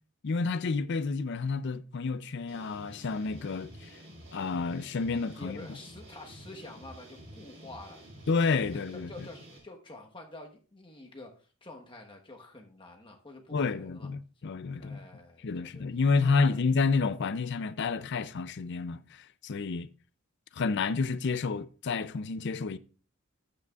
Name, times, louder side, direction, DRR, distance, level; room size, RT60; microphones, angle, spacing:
voice 1, 0.2-4.0 4.3-5.6 8.3-9.3 13.5-15.0 15.4-19.9 20.5-22.8, left 4 dB, 50° left, 0.4 m, -30 dB
sound 1, 2.5-9.6, right 1 dB, 55° right, 4.1 m, -50 dB
voice 2, 5.3-8.0 8.7-14.1 14.8-15.8 16.2-16.6, left 2 dB, 20° left, 1.1 m, -48 dB
12.0 x 8.4 x 2.4 m
head